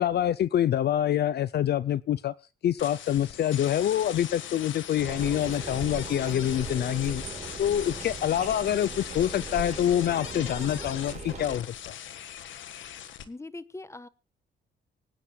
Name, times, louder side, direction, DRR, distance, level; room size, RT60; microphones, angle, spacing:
voice 1, 0.0-2.3 2.6-7.2 7.6-11.9, left 11 dB, 55° left, 18 dB, 0.5 m, -26 dB
sound 1, 2.8-13.2, left 10 dB, 75° left, 1.6 m, -40 dB
sound 2, 5.0-11.6, right 4 dB, 35° right, 4.3 m, -39 dB
voice 2, 13.2-14.1, left 2 dB, 15° left, 16 dB, 1.2 m, -41 dB
25.5 x 9.3 x 2.3 m, 0.31 s
cardioid pair, 90°, 20 cm